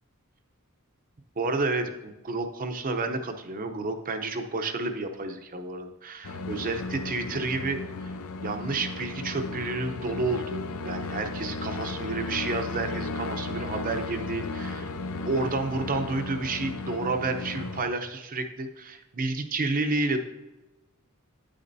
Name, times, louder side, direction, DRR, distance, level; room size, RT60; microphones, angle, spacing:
voice 1, 1.4-8.1 8.4-20.2, right 3 dB, 40° right, 7 dB, 0.7 m, -30 dB
sound 1, 6.2-17.8, left 3 dB, 70° left, 0.6 m, -35 dB
9.8 x 8.6 x 2.7 m, 1.1 s
head